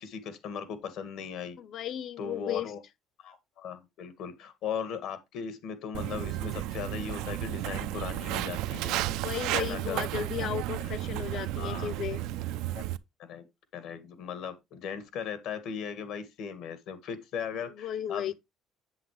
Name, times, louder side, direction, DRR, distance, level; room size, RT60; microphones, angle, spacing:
voice 1, 0.0-1.6 2.2-2.8 3.2-9.0 9.5-10.0 10.4-11.0 11.6-11.9 12.7-12.9 13.2-13.5 13.7-18.3, left 7 dB, 70° left, 1.9 m, -38 dB
voice 2, 1.6-2.7 9.1-12.2 17.8-18.3, left 10 dB, 55° left, 0.8 m, -35 dB
Walk footsteps, 5.9-13.0, right 15 dB, 85° right, 0.5 m, -33 dB
7.8 x 7.6 x 3.2 m
cardioid pair, 130°, 0 cm